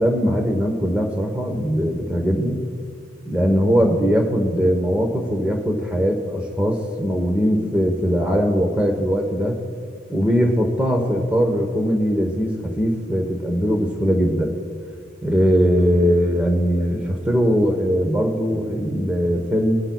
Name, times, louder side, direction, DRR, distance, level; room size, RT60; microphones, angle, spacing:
voice 1, 0.0-2.6 3.3-9.6 10.1-14.6 15.2-19.8, equal, 10° right, 2 dB, 0.9 m, -20 dB
21.5 x 9.8 x 2.3 m, 2.3 s
head